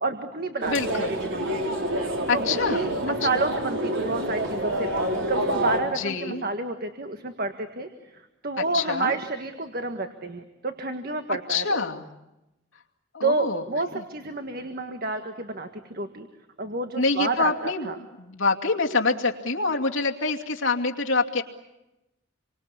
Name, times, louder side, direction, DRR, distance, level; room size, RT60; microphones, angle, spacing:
voice 1, 0.0-0.7 1.0-1.6 2.3-4.9 5.3-11.8 13.2-16.3 16.6-18.0, right 3 dB, 45° right, 6 dB, 1.7 m, -30 dB
sound 1, 0.6-5.8, right 1 dB, 70° right, 4.9 m, -27 dB
voice 2, 0.7-1.2 2.3-2.9 5.9-6.4 8.6-9.2 11.3-12.0 13.1-13.6 13.9-14.0 17.0-17.9 18.2-21.4, left 4 dB, 75° left, 1 dB, 2.5 m, -26 dB
28.5 x 24.5 x 8.5 m, 0.95 s
head